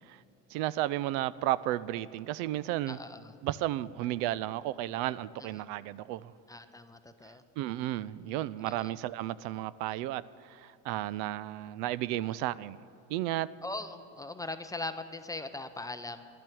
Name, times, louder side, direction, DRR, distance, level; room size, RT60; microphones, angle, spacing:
voice 1, 0.5-3.0 3.4-6.3 7.6-12.8 13.1-13.5, right 14 dB, 70° right, 0.5 m, -33 dB
voice 2, 2.9-3.3 6.5-7.4 8.6-8.9 13.6-16.2, left 2 dB, 10° left, 0.5 m, -40 dB
11.5 x 7.5 x 9.8 m
supercardioid pair, 115°, 38 cm